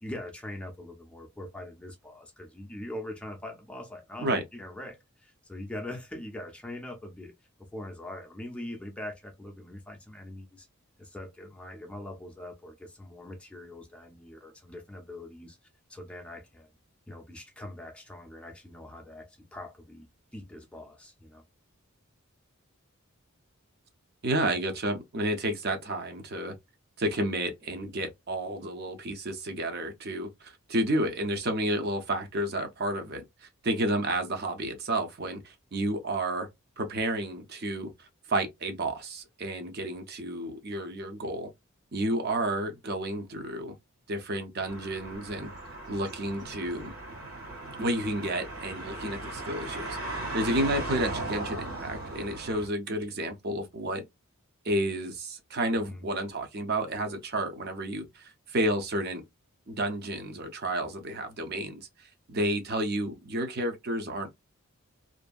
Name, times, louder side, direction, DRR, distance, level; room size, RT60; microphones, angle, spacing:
voice 1, 0.0-7.3 7.7-10.7 11.0-15.6 15.9-16.7 17.1-21.4 55.8-56.0, left 1 dB, 5° left, 0.5 m, -42 dB
voice 2, 24.2-26.6 27.0-36.5 36.8-41.5 41.9-43.8 44.1-45.5 45.9-46.9 47.8-54.0 54.6-59.2 59.7-64.3, right 1 dB, 45° right, 0.5 m, -31 dB
sound 1, 44.7-52.7, right 2 dB, 80° right, 1.5 m, -37 dB
2.6 x 2.5 x 2.3 m
head